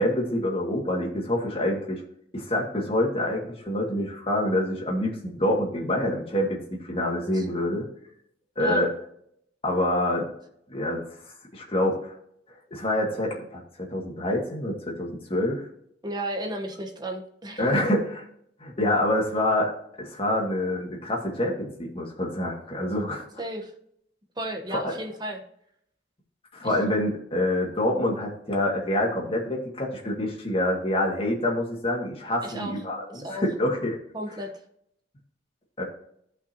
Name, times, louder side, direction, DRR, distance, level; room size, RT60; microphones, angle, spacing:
voice 1, 0.0-2.0 2.3-7.9 8.6-8.9 9.6-10.3 10.7-11.1 11.5-12.1 12.7-13.6 13.9-15.7 17.6-18.2 18.6-19.7 20.0-23.2 24.7-24.9 26.5-34.0 35.8-35.9, left 1 dB, 35° left, -1 dB, 2.1 m, -26 dB
voice 2, 16.0-17.8 23.4-23.7 24.4-25.4 26.6-26.7 32.4-32.7 33.1-33.4 34.1-34.5, right 1 dB, 25° right, 3 dB, 1.1 m, -33 dB
15.5 x 5.5 x 2.9 m, 0.72 s
head